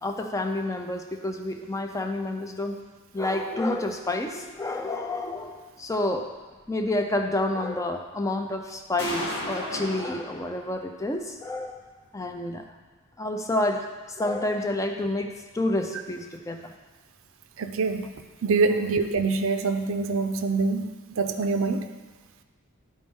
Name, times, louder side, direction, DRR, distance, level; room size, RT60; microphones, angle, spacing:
voice 1, 0.0-2.8 3.1-6.3 6.7-11.8 12.1-12.6 13.2-13.8 14.2-16.7 18.7-18.8, left 1 dB, 15° left, 5 dB, 0.5 m, -29 dB
sound 1, 4.9-5.0 5.4-5.5 8.3-8.4 9.0-10.7, left 1 dB, 90° left, 1.9 m, -34 dB
voice 2, 17.6-18.1 18.4-20.9 21.2-21.8, right 4 dB, 60° right, 8 dB, 0.5 m, -25 dB
12.5 x 4.3 x 3.6 m, 1.3 s
head